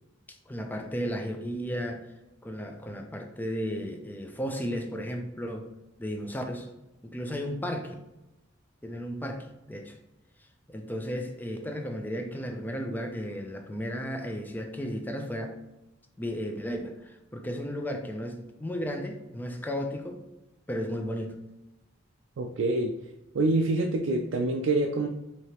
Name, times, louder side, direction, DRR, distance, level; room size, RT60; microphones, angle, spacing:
voice 1, 0.5-2.0 2.4-5.7 6.0-6.7 7.0-8.0 8.8-9.9 10.7-15.6 16.2-20.2 20.7-21.4, equal, 10° left, 4 dB, 0.4 m, -34 dB
voice 2, 22.4-23.0 23.3-25.1, right 2 dB, 70° right, 2 dB, 0.4 m, -26 dB
4.8 x 2.8 x 2.9 m, 0.95 s
head